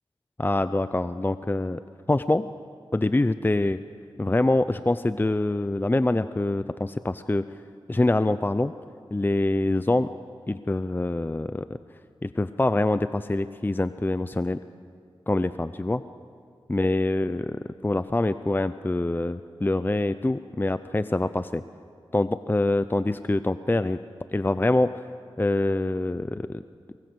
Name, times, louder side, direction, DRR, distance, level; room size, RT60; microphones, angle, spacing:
voice 1, 0.4-1.8 2.1-2.5 2.9-3.8 4.2-7.5 7.9-8.7 9.1-10.1 10.5-11.7 12.2-14.6 15.3-16.0 16.7-17.5 17.8-21.6 22.1-24.0 24.3-25.0 25.4-26.6, left 2 dB, 20° left, 13 dB, 0.6 m, -25 dB
23.5 x 20.0 x 8.0 m, 2.3 s
cardioid pair, 50°, 10 cm